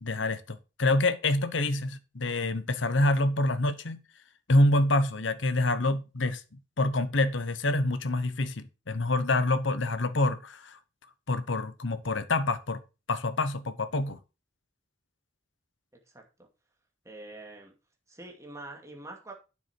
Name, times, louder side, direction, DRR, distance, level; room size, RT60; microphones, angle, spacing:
voice 1, 0.0-4.0 4.5-6.4 6.8-10.8 11.3-12.8 13.1-14.2, left 2 dB, 80° left, 1.0 m, -26 dB
voice 2, 17.0-17.7 18.1-19.3, right 2 dB, 15° right, 2.5 m, -44 dB
9.6 x 7.1 x 4.6 m
head